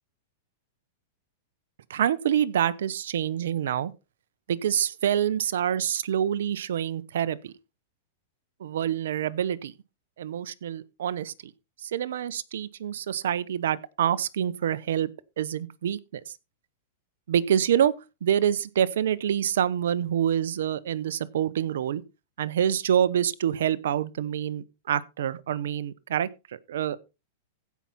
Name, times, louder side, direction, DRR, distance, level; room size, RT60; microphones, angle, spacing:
voice 1, 1.9-3.9 4.5-7.5 8.6-9.7 10.2-11.5 11.8-15.1 15.4-16.3 17.3-17.9 18.2-22.0 22.4-27.0, right 9 dB, 75° right, 0.9 m, -26 dB
15.5 x 5.9 x 4.2 m
hypercardioid pair, 130°, 0 cm